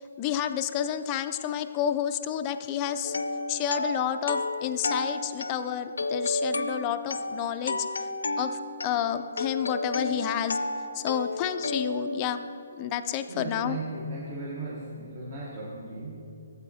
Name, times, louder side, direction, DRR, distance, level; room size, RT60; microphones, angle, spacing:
voice 1, 0.2-3.1 3.5-7.9 8.4-8.6 8.8-10.6 10.9-12.4 12.8-13.8, left 9 dB, 20° left, 7 dB, 0.3 m, -30 dB
sound 1, 3.0-12.9, left 2 dB, 90° left, 0.4 m, -32 dB
voice 2, 13.3-16.3, right 2 dB, 35° right, -3 dB, 1.0 m, -37 dB
12.5 x 8.2 x 2.7 m, 2.9 s
hypercardioid pair, 165°, 0 cm